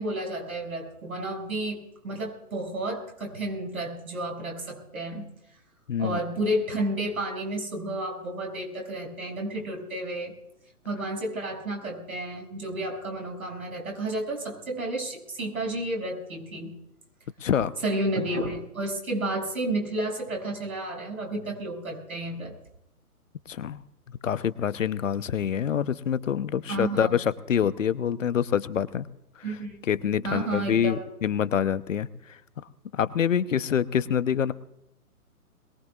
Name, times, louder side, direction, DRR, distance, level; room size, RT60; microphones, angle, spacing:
voice 1, 0.0-5.3 6.0-10.3 10.8-16.7 17.8-22.5 26.7-27.1 29.4-29.8 30.2-31.0, right 1 dB, 65° right, 3 dB, 6.7 m, -31 dB
voice 2, 5.9-6.2 17.4-17.8 23.5-23.8 24.2-29.1 29.5-29.6 29.9-32.4 32.9-34.5, left 8 dB, 55° left, 14 dB, 0.9 m, -26 dB
22.0 x 20.5 x 2.4 m, 0.81 s
figure-of-eight pair, 140°, 45 cm